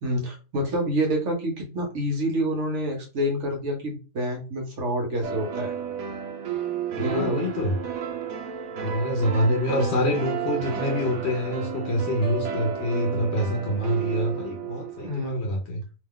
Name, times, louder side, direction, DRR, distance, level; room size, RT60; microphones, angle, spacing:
voice 1, 0.0-5.7 7.0-7.4 9.6-9.9 15.0-15.4, equal, 60° right, 2 dB, 1.1 m, -27 dB
sound 1, 5.2-15.1, right 7 dB, 80° right, 1.0 m, -32 dB
voice 2, 7.0-7.8 8.8-15.8, left 1 dB, 60° left, 0 dB, 0.8 m, -26 dB
2.8 x 2.2 x 3.5 m, 0.32 s
omnidirectional pair, 1.5 m